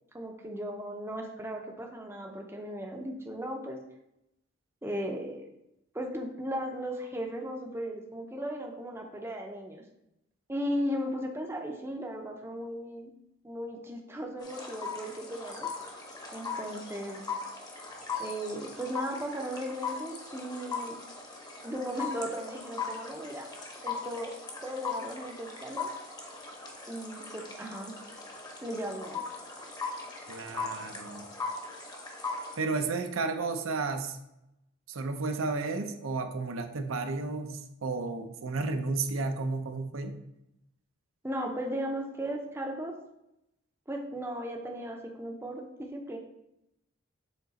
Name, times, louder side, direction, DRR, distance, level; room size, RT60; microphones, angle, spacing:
voice 1, 0.1-3.8 4.8-5.5 5.9-9.8 10.5-13.1 13.4-15.7 16.3-17.2 18.2-21.0 21.6-23.5 23.8-26.0 26.9-27.9 28.6-29.3 41.2-43.0 43.9-46.2, equal, 10° right, 2 dB, 0.6 m, -36 dB
sound 1, 14.4-32.6, left 4 dB, 20° left, 0.9 m, -39 dB
voice 2, 30.3-31.3 32.6-34.2 34.9-40.2, right 3 dB, 75° right, 6 dB, 0.6 m, -32 dB
7.1 x 3.9 x 4.0 m, 0.85 s
head